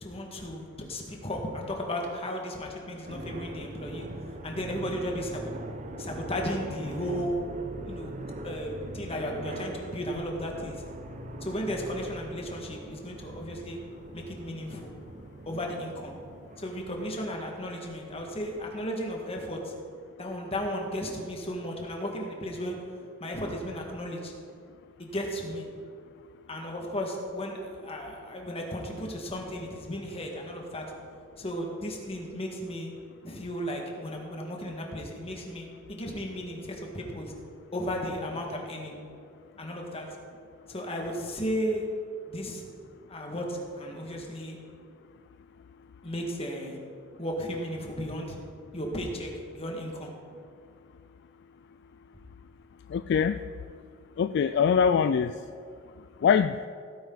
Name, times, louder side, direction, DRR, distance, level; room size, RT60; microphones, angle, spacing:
voice 1, 0.0-4.1 4.4-5.6 6.0-7.5 7.8-8.1 8.4-10.8 11.4-13.8 14.1-14.9 15.5-16.2 16.6-19.7 20.2-22.8 23.2-24.3 25.0-25.7 26.5-30.9 31.4-32.9 33.2-37.3 37.7-39.0 39.6-40.1 40.7-41.9 42.3-42.7 43.1-44.6 46.0-46.8 47.2-48.4 48.7-50.1, equal, 30° left, 1 dB, 1.9 m, -34 dB
sound 1, 3.0-18.8, right 1 dB, 40° right, 0.8 m, -42 dB
voice 2, 52.9-53.4 54.2-55.4 56.2-56.6, left 7 dB, 60° left, 11 dB, 0.3 m, -23 dB
17.0 x 9.2 x 4.0 m, 2.2 s
head